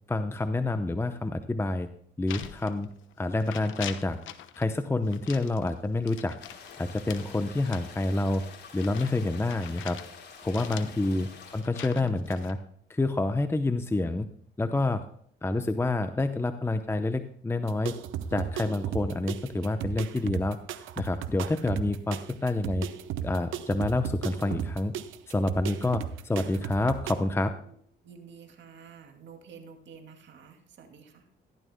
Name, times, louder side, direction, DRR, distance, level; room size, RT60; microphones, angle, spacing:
voice 1, 0.1-1.9 2.2-2.9 3.2-4.2 4.6-6.4 6.8-8.4 8.7-10.0 10.4-11.3 11.5-12.6 12.9-14.3 14.6-15.0 15.4-18.0 18.3-20.6 21.0-22.9 23.2-24.9 25.3-27.5, left 2 dB, 10° left, 9 dB, 0.7 m, -28 dB
sound 1, 2.3-3.1 3.4-4.7 5.1-10.1 10.5-12.5, left 11 dB, 80° left, 1.0 m, -43 dB
sound 2, 6.4-11.6, left 5 dB, 60° left, 3.6 m, -48 dB
sound 3, 17.6-27.1, right 9 dB, 90° right, 0.8 m, -36 dB
voice 2, 28.0-31.3, right 6 dB, 65° right, 5 dB, 2.4 m, -50 dB
14.5 x 12.0 x 2.2 m, 0.64 s
cardioid pair, 90°, 20 cm